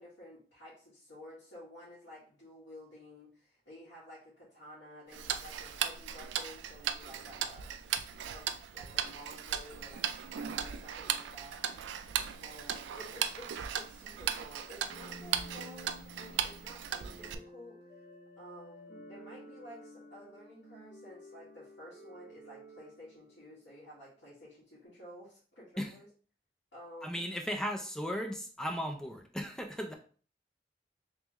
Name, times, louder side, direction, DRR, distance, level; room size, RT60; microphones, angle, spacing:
voice 1, 0.0-12.0 12.4-17.9 18.4-26.1 26.7-27.4, equal, 90° left, -9 dB, 1.7 m, -52 dB
Tick-tock, 5.1-17.3, right 9 dB, 85° right, 0.3 m, -37 dB
sound 1, 14.9-23.9, equal, 70° left, 1.0 m, -52 dB
voice 2, 27.0-29.9, equal, 5° left, 3 dB, 0.4 m, -36 dB
3.5 x 3.1 x 3.0 m, 0.41 s
head